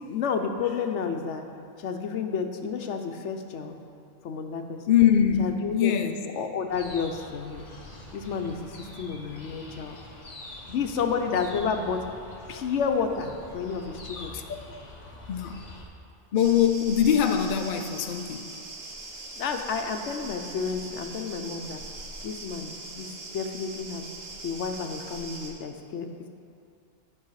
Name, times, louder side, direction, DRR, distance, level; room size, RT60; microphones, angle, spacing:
voice 1, 0.1-1.4 1.8-3.7 4.2-5.0 5.4-5.9 6.2-7.6 8.1-10.0 10.7-12.0 12.5-14.3 19.4-21.8 22.2-24.0 24.4-26.1, left 6 dB, 75° left, 5 dB, 1.0 m, -31 dB
voice 2, 4.9-6.2 14.3-14.4 15.3-15.6 16.3-18.5, left 9 dB, 55° left, 5 dB, 0.6 m, -22 dB
sound 1, 6.7-15.8, left 2 dB, 40° left, 1.1 m, -45 dB
sound 2, 16.4-25.5, right 2 dB, 55° right, 1.3 m, -41 dB
12.0 x 5.6 x 4.8 m, 2.6 s
omnidirectional pair, 1.2 m